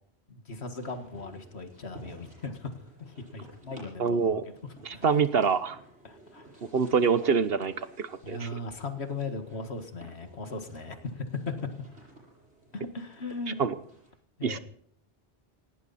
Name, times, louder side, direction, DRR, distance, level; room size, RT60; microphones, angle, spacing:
voice 1, 0.3-2.7 3.0-4.4 4.9-5.0 6.0-6.5 8.2-11.5 12.7-13.5 14.4-14.6, left 3 dB, 75° left, 7 dB, 2.2 m, -38 dB
sound 1, 0.8-14.1, right 1 dB, 80° right, 8.4 m, -53 dB
voice 2, 4.0-4.4 4.8-5.8 6.7-8.5 13.6-13.7 14.4-14.6, right 6 dB, 65° right, 13 dB, 1.2 m, -25 dB
18.5 x 17.5 x 4.2 m, 0.64 s
omnidirectional pair, 1.1 m